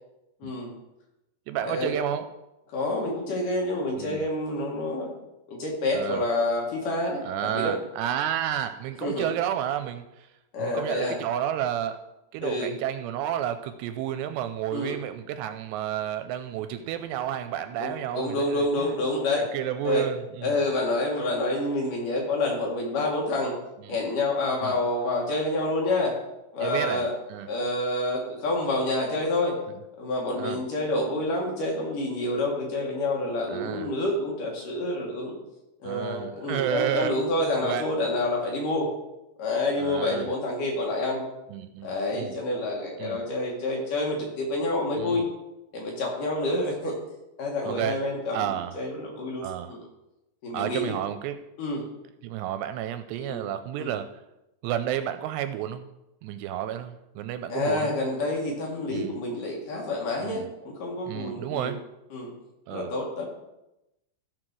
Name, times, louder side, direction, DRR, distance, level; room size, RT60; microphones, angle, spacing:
voice 1, 0.4-0.7 1.6-1.9 2.7-5.1 5.5-7.8 9.0-9.3 10.5-11.2 12.4-12.7 14.7-15.0 17.8-19.5 19.8-20.0 20.4-23.6 23.9-26.2 26.5-27.1 27.5-29.6 30.0-35.4 35.8-38.9 39.4-41.2 41.8-45.3 45.7-47.0 47.4-49.8 50.4-51.0 51.6-51.9 53.3-53.4 53.8-53.9 57.5-61.7 62.1-62.3 62.7-63.3, left 2 dB, 55° left, -1 dB, 2.8 m, -28 dB
voice 2, 1.5-2.3 4.0-4.2 5.9-6.2 7.2-10.3 10.6-12.0 12.3-18.9 19.5-20.6 23.9-24.0 24.6-24.8 26.6-27.5 30.4-30.6 33.5-33.9 35.8-37.1 37.6-37.9 39.8-40.3 41.5-42.4 43.0-43.2 45.0-45.3 47.6-48.0 48.3-48.8 49.4-49.8 50.5-51.4 52.2-54.1 54.6-55.9 56.2-57.9 58.9-59.2 60.2-60.5 61.1-61.8 62.7-62.9, right 11 dB, 80° right, 10 dB, 2.6 m, -31 dB
14.5 x 5.0 x 6.1 m, 0.92 s
omnidirectional pair, 5.1 m